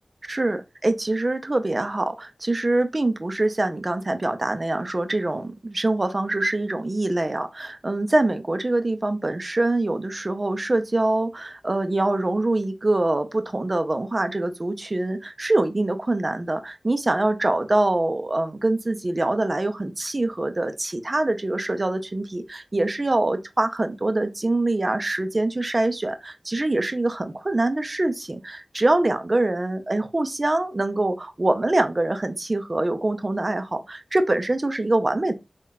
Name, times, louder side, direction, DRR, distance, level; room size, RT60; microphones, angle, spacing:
voice 1, 0.3-35.3, right 2 dB, 35° right, 0.4 m, -24 dB
3.7 x 2.2 x 2.2 m
wide cardioid pair, 65°, 0 cm